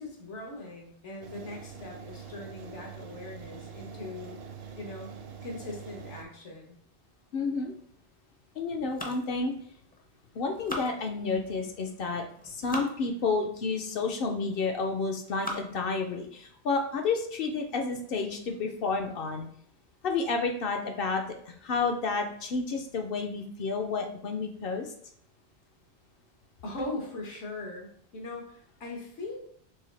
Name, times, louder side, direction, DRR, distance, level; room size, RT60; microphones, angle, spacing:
voice 1, 0.0-4.4 4.8-5.1 5.4-6.8 26.6-29.4, left 2 dB, 85° left, 0 dB, 1.4 m, -40 dB
sound 1, 1.2-6.2, right 6 dB, 65° right, 0.8 m, -44 dB
voice 2, 7.3-7.7 8.6-9.5 10.4-19.5 20.0-24.9, left 4 dB, 60° left, 4 dB, 0.7 m, -30 dB
sound 2, 8.8-10.0 10.4-11.5 12.2-13.0 13.6-13.7 14.4-14.8 15.2-15.8 16.4-16.5 16.9-17.0 17.4-17.7, left 1 dB, 15° left, 0.4 m, -40 dB
4.7 x 3.3 x 3.2 m, 0.64 s
omnidirectional pair, 1.2 m